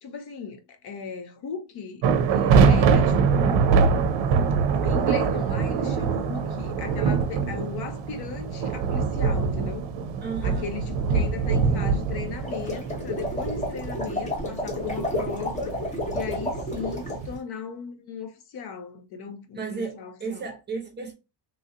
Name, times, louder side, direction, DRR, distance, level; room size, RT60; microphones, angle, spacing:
voice 1, 0.0-2.0 2.3-3.9 4.8-9.9 10.4-15.8 16.1-20.4, left 6 dB, 60° left, 0.7 m, -37 dB
sound 1, 2.0-17.4, right 5 dB, 80° right, 0.6 m, -24 dB
voice 2, 10.2-10.7 19.5-21.1, right 5 dB, 25° right, 0.8 m, -34 dB
sound 2, 12.3-17.2, left 1 dB, 15° left, 0.8 m, -31 dB
3.1 x 2.6 x 2.6 m
cardioid pair, 170°, 44 cm